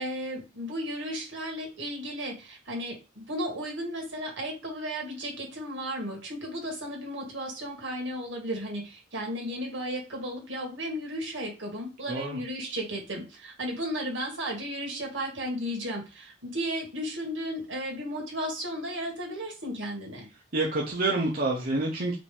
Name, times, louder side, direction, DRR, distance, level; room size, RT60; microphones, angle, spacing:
voice 1, 0.0-20.3, equal, 75° right, 0 dB, 2.0 m, -34 dB
voice 2, 12.1-12.4 20.5-22.2, right 2 dB, 50° right, -2 dB, 0.9 m, -27 dB
5.1 x 2.9 x 3.5 m, 0.30 s
head